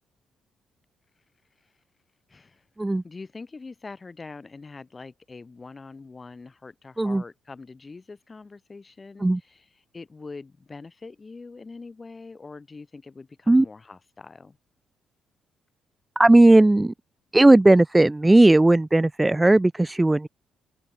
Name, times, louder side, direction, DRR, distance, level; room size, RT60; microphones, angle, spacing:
voice 1, 2.3-2.6 3.0-14.6, left 4 dB, 25° left, 6.4 m, -43 dB
voice 2, 16.1-16.9 17.3-20.3, right 2 dB, 15° right, 1.5 m, -16 dB
cardioid pair, 90°, 0 cm